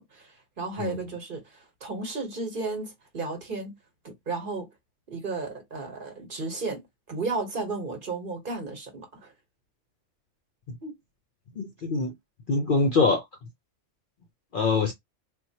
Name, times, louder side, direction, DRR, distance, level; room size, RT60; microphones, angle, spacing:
voice 1, 0.0-3.7 4.0-4.7 5.1-6.8 7.1-9.3 10.8-11.0, right 3 dB, 45° right, 1.1 m, -34 dB
voice 2, 11.6-12.1 12.5-13.2 14.5-14.9, left 4 dB, 60° left, 0.6 m, -24 dB
4.1 x 2.2 x 2.7 m
omnidirectional pair, 1.3 m